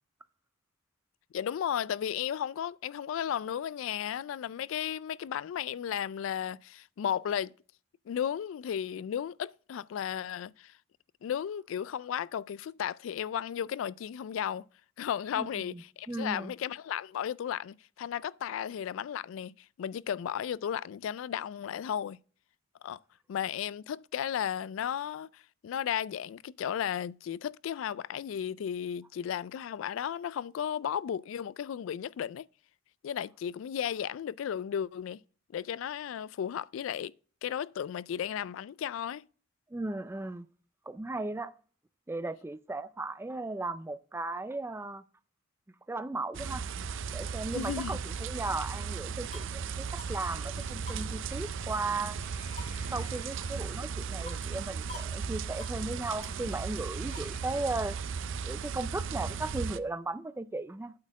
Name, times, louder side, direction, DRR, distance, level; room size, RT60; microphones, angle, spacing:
voice 1, 1.3-7.5 8.1-10.7 11.2-14.7 15.0-19.5 19.8-22.2 22.8-23.0 23.3-32.5 33.0-35.2 35.5-37.1 37.4-39.3 47.5-48.0, left 9 dB, 70° left, 0.3 m, -34 dB
voice 2, 15.4-15.8 16.1-16.5 39.7-40.5 40.9-41.5 42.1-45.0 45.9-46.6 47.1-52.3 52.9-58.0 58.4-60.9, right 2 dB, 10° right, 0.4 m, -36 dB
sound 1, 46.3-59.8, right 6 dB, 65° right, 0.5 m, -36 dB
sound 2, 49.0-49.6 50.0-50.1 50.4-50.5 50.9-51.8 52.1-53.8 54.3-54.6 54.9-55.2 55.4-55.8 56.2-57.4, left 3 dB, 35° left, 1.4 m, -50 dB
8.6 x 4.2 x 7.3 m
head